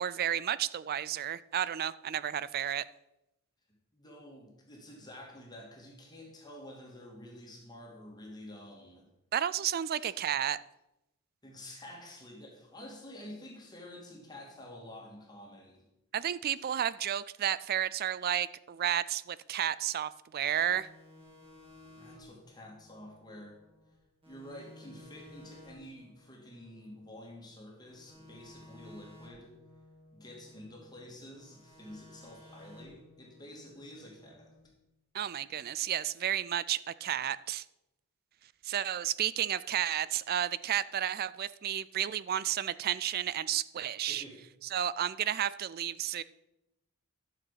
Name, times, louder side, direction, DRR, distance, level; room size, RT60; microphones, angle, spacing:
voice 1, 0.0-2.8 9.3-10.6 16.1-20.9 35.1-37.6 38.6-44.2 44.7-46.2, right 10 dB, 45° right, 18 dB, 0.3 m, -32 dB
voice 2, 3.9-9.1 10.0-10.2 11.4-15.8 16.5-16.7 21.9-23.6 24.3-29.6 30.1-34.5 44.1-44.4, left 1 dB, 20° left, -1 dB, 2.3 m, -49 dB
sound 1, 20.7-23.9 24.2-27.5 27.9-31.0 31.3-34.6, left 1 dB, 25° right, 4.5 m, -56 dB
12.0 x 6.8 x 5.8 m, 0.91 s
head